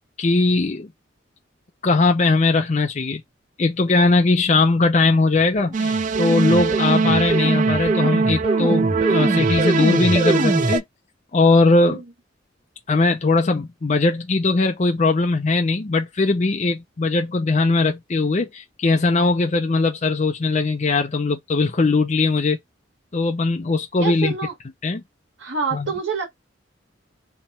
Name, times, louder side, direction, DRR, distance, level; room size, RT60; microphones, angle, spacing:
voice 1, 0.2-0.9 1.8-3.2 3.6-10.8 11.3-12.0 12.9-22.6 23.1-24.3 24.8-25.0 25.7-25.9, left 3 dB, 35° left, 0.5 m, -19 dB
sound 1, 5.4-10.8, right 1 dB, 25° right, 1.2 m, -25 dB
sound 2, 5.7-10.8, right 5 dB, 40° right, 0.3 m, -22 dB
voice 2, 24.0-24.5 25.4-26.3, right 5 dB, 80° right, 1.7 m, -26 dB
3.4 x 3.0 x 4.2 m
head